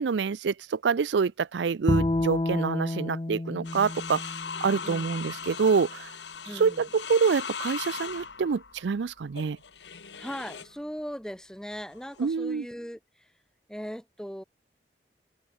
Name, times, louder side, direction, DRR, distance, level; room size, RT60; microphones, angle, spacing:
voice 1, 0.0-6.1 6.6-9.6 12.2-12.6, right 5 dB, 90° right, 0.5 m, -27 dB
Bowed string instrument, 1.9-5.1, left 2 dB, 25° left, 0.5 m, -29 dB
sound 1, 3.6-10.8 11.7-12.3, left 6 dB, 90° left, 2.2 m, -39 dB
voice 2, 4.8-5.2 6.4-6.8 10.2-13.3 13.7-14.4, equal, 5° left, 3.1 m, -39 dB
head